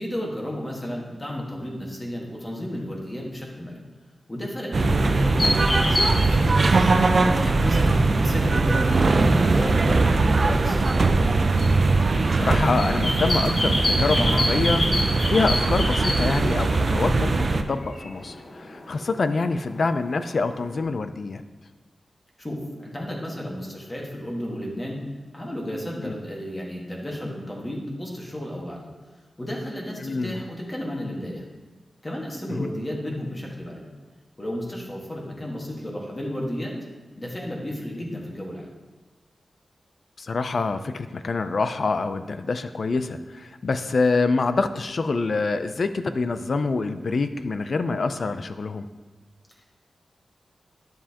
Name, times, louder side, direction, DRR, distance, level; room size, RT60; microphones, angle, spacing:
voice 1, 0.0-3.8 4.3-6.5 7.3-10.9 22.4-25.0 25.3-28.9 29.4-31.5 32.0-33.8 34.4-36.8 37.2-38.7 49.6-49.7, equal, 20° left, -2 dB, 1.5 m, -33 dB
sound 1, 4.7-17.6, right 3 dB, 45° right, 0.4 m, -21 dB
sound 2, 5.4-20.8, left 1 dB, 40° left, 1.1 m, -31 dB
voice 2, 12.3-14.9 15.3-18.4 18.6-21.4 26.0-26.1 30.0-30.3 32.5-32.7 40.2-48.9, left 3 dB, 55° left, 10 dB, 0.4 m, -26 dB
10.5 x 7.3 x 2.9 m, 1.3 s
wide cardioid pair, 115°, 0 cm